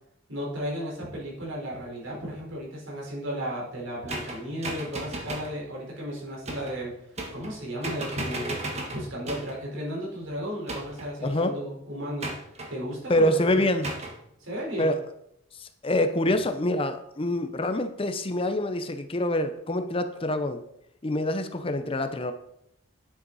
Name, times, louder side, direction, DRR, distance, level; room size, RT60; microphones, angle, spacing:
voice 1, 0.3-7.0 7.3-8.6 8.9-12.3 12.7-13.8 14.4-14.9, equal, 80° right, -4 dB, 4.5 m, -34 dB
sound 1, 4.1-5.6 6.5-6.8 7.2-7.6 7.8-9.6 10.7-11.2 12.2-12.7 13.8-14.2, right 2 dB, 35° right, 1.5 m, -35 dB
voice 2, 11.2-11.5 13.1-13.9 14.8-15.0 15.6-20.6 21.0-22.3, left 1 dB, 30° left, 8 dB, 0.7 m, -26 dB
10.0 x 7.5 x 4.1 m, 0.75 s
head